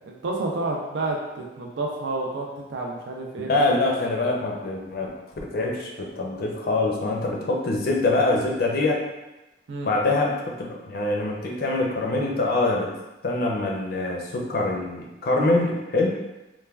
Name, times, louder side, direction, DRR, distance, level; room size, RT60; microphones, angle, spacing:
voice 1, 0.0-3.5 9.7-9.9, right 2 dB, 75° right, -1 dB, 0.4 m, -30 dB
voice 2, 3.4-5.1 5.4-9.0 9.8-12.9 13.2-16.1, left 2 dB, 55° left, -1 dB, 0.4 m, -24 dB
3.2 x 2.2 x 2.3 m, 1.0 s
head